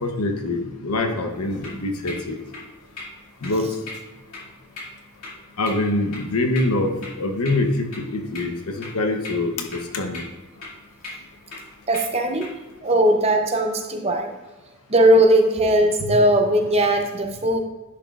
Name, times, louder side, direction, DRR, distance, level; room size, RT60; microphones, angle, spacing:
voice 1, 0.0-2.4 3.4-3.7 5.6-6.9 7.2-9.5 9.9-10.2 16.0-16.1, left 2 dB, 90° left, 4 dB, 0.9 m, -24 dB
sound 1, 1.3-12.8, left 2 dB, 65° left, 2.5 m, -41 dB
voice 2, 11.9-12.5 12.8-14.3 14.9-17.6, right 1 dB, 30° right, 3 dB, 0.7 m, -18 dB
10.5 x 6.1 x 2.4 m, 1.2 s
head